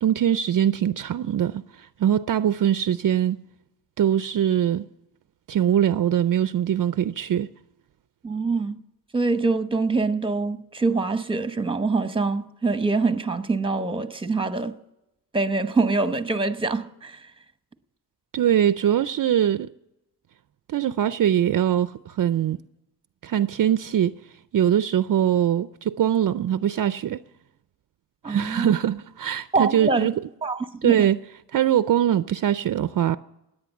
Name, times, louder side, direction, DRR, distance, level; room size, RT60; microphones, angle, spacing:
voice 1, 0.0-3.4 4.0-4.8 5.5-7.5 18.3-19.7 20.7-22.6 23.2-24.1 24.5-27.2 28.3-30.1 30.8-31.2 31.5-33.2, right 10 dB, 55° right, 0.5 m, -22 dB
voice 2, 8.2-8.8 9.1-14.8 15.3-17.3 28.2-28.8 29.5-30.1 30.4-31.1, right 3 dB, 15° right, 0.9 m, -24 dB
17.5 x 10.5 x 7.1 m
cardioid pair, 90°, 40 cm